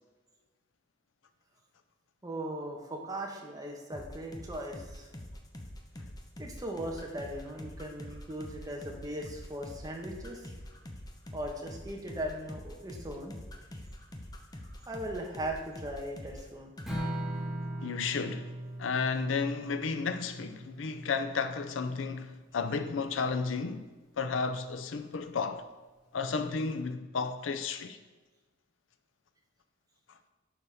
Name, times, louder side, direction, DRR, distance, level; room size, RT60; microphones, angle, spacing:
voice 1, 2.2-5.1 6.4-10.5 11.3-13.4 14.9-16.7, right 1 dB, 20° right, 1.1 m, -38 dB
sound 1, 3.9-16.5 16.8-17.0, left 1 dB, 20° left, 0.7 m, -45 dB
Strum, 16.9-23.1, right 1 dB, ahead, 1.6 m, -40 dB
voice 2, 17.8-18.5 18.8-23.9 24.2-25.6 26.1-28.0, left 5 dB, 85° left, 0.5 m, -32 dB
11.0 x 4.2 x 3.5 m
head